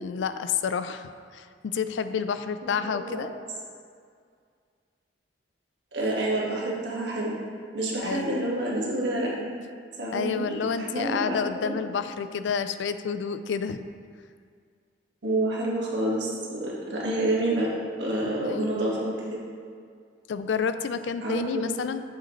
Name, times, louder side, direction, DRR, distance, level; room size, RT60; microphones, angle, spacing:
voice 1, 0.0-3.3 8.0-8.4 10.1-13.8 18.4-18.8 20.3-22.1, left 6 dB, 75° left, 11 dB, 0.4 m, -29 dB
voice 2, 2.6-3.3 5.9-7.3 7.7-9.5 10.0-11.8 15.2-17.7 18.0-19.1 21.2-21.7, right 1 dB, 70° right, -4 dB, 1.6 m, -28 dB
7.7 x 6.5 x 3.1 m, 2.2 s
head